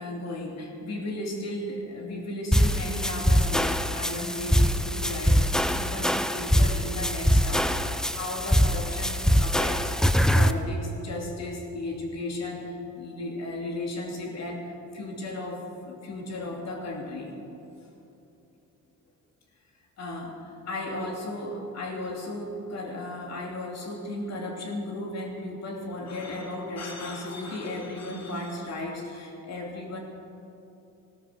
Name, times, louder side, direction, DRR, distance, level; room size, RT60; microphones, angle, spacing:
voice 1, 0.0-9.9 10.3-17.4 17.8-17.9 20.0-30.0, left 2 dB, 60° left, 0 dB, 3.0 m, -35 dB
sound 1, 2.5-10.5, equal, ahead, 0.6 m, -23 dB
16.5 x 12.5 x 6.4 m, 2.9 s
cardioid pair, 90°, 30 cm